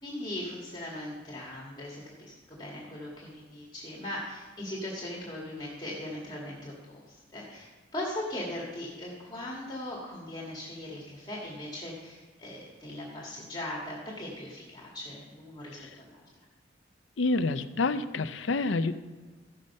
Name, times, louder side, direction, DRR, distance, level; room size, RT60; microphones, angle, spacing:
voice 1, 0.0-16.2, left 1 dB, 25° left, -3 dB, 1.8 m, -39 dB
voice 2, 17.2-18.9, left 3 dB, 80° left, 11 dB, 0.6 m, -28 dB
14.0 x 6.4 x 5.4 m, 1.3 s
head